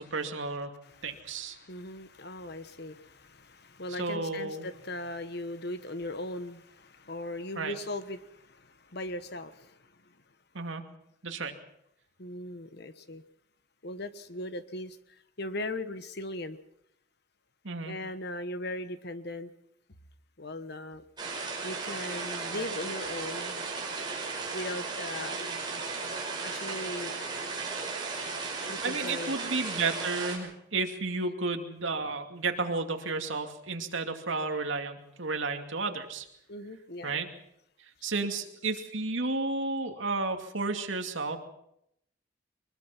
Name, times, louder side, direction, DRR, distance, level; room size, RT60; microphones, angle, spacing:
voice 1, 0.0-0.7 1.0-1.6 3.9-4.7 7.6-7.7 10.5-10.8 11.2-11.5 17.6-17.9 28.8-36.3 37.0-37.3 38.0-41.4, right 3 dB, 75° right, 2.5 m, -32 dB
voice 2, 0.8-10.1 12.2-13.2 13.8-15.0 15.4-16.6 17.8-19.5 20.4-21.0 21.6-23.6 24.5-25.4 26.4-27.1 28.7-29.4 36.5-37.2, left 1 dB, 55° left, 1.3 m, -39 dB
sound 1, 21.2-30.4, right 4 dB, 20° right, 5.6 m, -35 dB
23.5 x 21.5 x 5.9 m
head